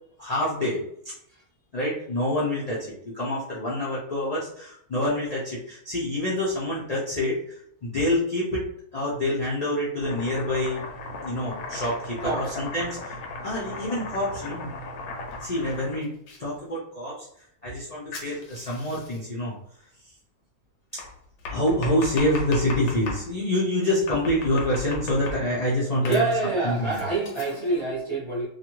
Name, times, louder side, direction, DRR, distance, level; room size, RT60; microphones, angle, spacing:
voice 1, 0.2-1.1 1.7-8.7 8.9-10.8 11.2-13.1 13.4-14.7 15.4-16.1 16.4-17.3 17.6-19.5 20.9-21.0 21.5-26.3 26.6-27.0, left 1 dB, 70° left, -8 dB, 0.3 m, -27 dB
Domestic sounds home sounds, 10.0-16.4 18.1-19.2 21.0-23.3 24.1-25.6 26.1-27.8, left 2 dB, 90° left, 1.1 m, -37 dB
voice 2, 12.2-12.5 26.0-28.4, right 3 dB, 25° right, -8 dB, 0.7 m, -26 dB
2.6 x 2.4 x 3.0 m, 0.69 s
omnidirectional pair, 1.6 m